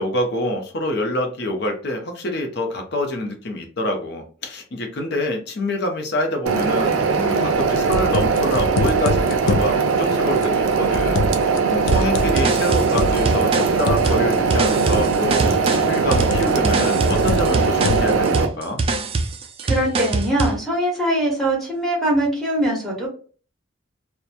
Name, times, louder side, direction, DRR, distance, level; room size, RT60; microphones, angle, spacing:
voice 1, 0.0-18.8, left 1 dB, 55° left, 4 dB, 0.7 m, -26 dB
sound 1, 6.5-18.5, right 5 dB, 85° right, 0.5 m, -20 dB
sound 2, 7.6-9.7 10.4-11.6 11.8-14.1 14.9-15.3 16.1-16.6 17.1-18.2, left 2 dB, 90° left, 0.4 m, -25 dB
sound 3, 11.9-20.6, right 3 dB, 30° right, 0.3 m, -24 dB
voice 2, 19.6-23.1, right 1 dB, ahead, -3 dB, 1.0 m, -22 dB
2.9 x 2.2 x 2.4 m, 0.40 s
head